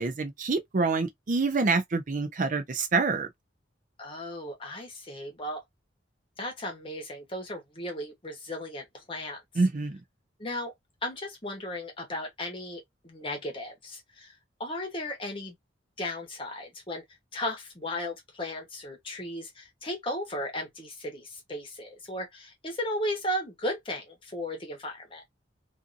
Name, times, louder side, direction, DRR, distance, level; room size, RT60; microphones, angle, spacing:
voice 1, 0.0-3.3 9.6-10.0, right 3 dB, 40° right, 0.4 m, -26 dB
voice 2, 4.0-5.6 6.4-9.4 10.4-10.7 11.0-14.3 14.6-15.6 16.0-17.0 17.3-25.2, left 1 dB, 25° left, 0.9 m, -35 dB
2.6 x 2.5 x 2.5 m
head